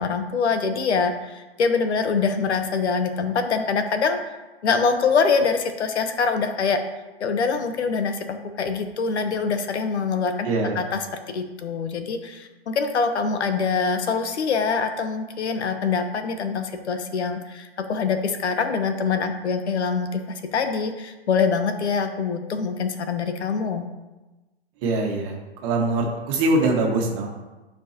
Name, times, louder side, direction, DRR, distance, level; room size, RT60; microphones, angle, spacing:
voice 1, 0.0-4.4 4.6-6.8 7.2-10.5 10.8-11.0 11.3-23.8, left 5 dB, 90° left, 7 dB, 1.0 m, -24 dB
voice 2, 10.4-10.8 24.8-27.3, right 2 dB, 30° right, 0 dB, 1.5 m, -23 dB
11.0 x 4.7 x 2.9 m, 1.1 s
hypercardioid pair, 155°, 32 cm